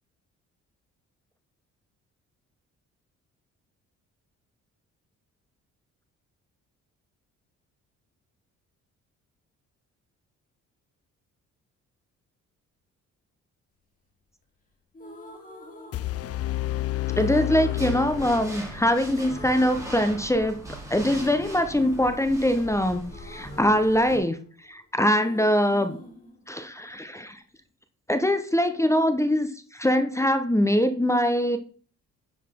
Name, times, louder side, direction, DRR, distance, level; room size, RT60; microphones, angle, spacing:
sound 1, 14.9-16.6 17.1-18.8 19.1-20.7 21.1-24.8 25.0-27.1, left 2 dB, 25° left, 3.6 m, -46 dB
sound 2, 15.9-18.9, left 16 dB, 50° left, 0.5 m, -30 dB
voice 1, 17.2-20.6 20.9-24.4 24.7-26.0 26.5-27.4 28.1-31.6, equal, 10° left, 9 dB, 1.1 m, -23 dB
sound 3, 17.7-24.2, equal, 10° right, 4.8 m, -40 dB
10.5 x 7.3 x 3.7 m, 0.41 s
cardioid pair, 90°, 30 cm